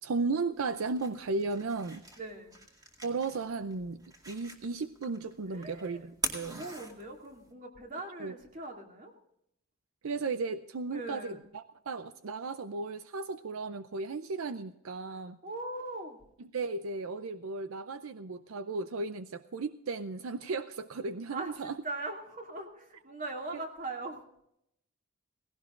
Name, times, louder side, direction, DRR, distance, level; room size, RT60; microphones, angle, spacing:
voice 1, 0.0-2.0 3.0-6.6 8.2-8.4 10.0-15.4 16.5-21.7, right 3 dB, 80° right, 12 dB, 0.5 m, -35 dB
sound 1, 0.5-7.5, right 1 dB, 20° right, 2.1 m, -43 dB
voice 2, 2.2-2.6 5.5-6.0 6.6-9.1 10.9-11.4 15.1-16.2 21.3-24.2, right 2 dB, 40° right, 2 dB, 2.4 m, -41 dB
18.0 x 16.5 x 2.5 m, 0.76 s
head